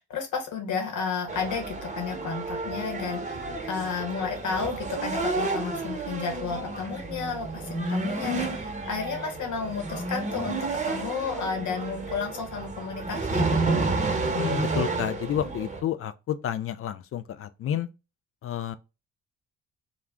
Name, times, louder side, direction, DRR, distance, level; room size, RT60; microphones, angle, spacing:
voice 1, 0.1-13.5, left 5 dB, 65° left, 1.0 m, -32 dB
sound 1, 1.3-15.8, right 3 dB, 20° right, 0.9 m, -30 dB
voice 2, 14.2-17.9 18.4-18.7, left 10 dB, 45° left, 0.4 m, -30 dB
2.4 x 2.0 x 3.4 m
hypercardioid pair, 50°, 32 cm